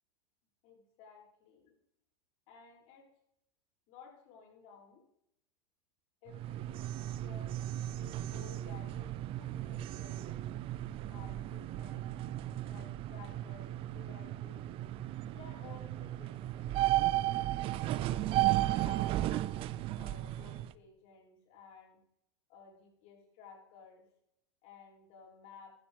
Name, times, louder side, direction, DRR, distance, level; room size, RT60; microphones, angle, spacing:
voice 1, 0.6-1.6 2.5-3.0 3.9-5.0 6.2-7.5 7.9-10.5 11.0-12.1 12.7-14.7 15.3-17.5 18.0-19.5 20.0-22.0 22.5-24.0 24.6-25.7, left 6 dB, 55° left, -2 dB, 6.8 m, -56 dB
sound 1, 6.3-20.7, right 15 dB, 40° right, 0.6 m, -35 dB
15.0 x 13.5 x 3.6 m, 0.78 s
hypercardioid pair, 115°, 14 cm